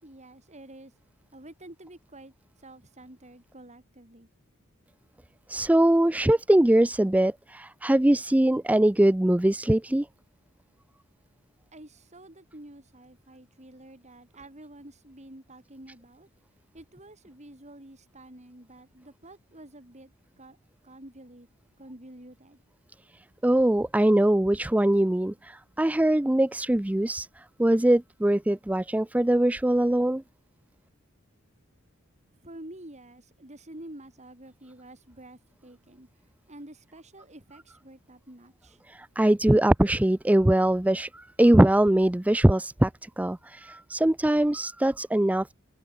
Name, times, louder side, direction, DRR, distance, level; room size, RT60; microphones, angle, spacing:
voice 1, 0.0-0.9 1.3-2.3 2.6-4.3 11.7-16.3 16.7-20.6 20.8-21.5 21.8-22.6 32.4-36.1 36.5-38.8, right 1 dB, 35° right, 5.6 m, -48 dB
voice 2, 5.5-10.1 23.4-30.2 38.9-45.5, right 1 dB, 5° right, 0.4 m, -22 dB
head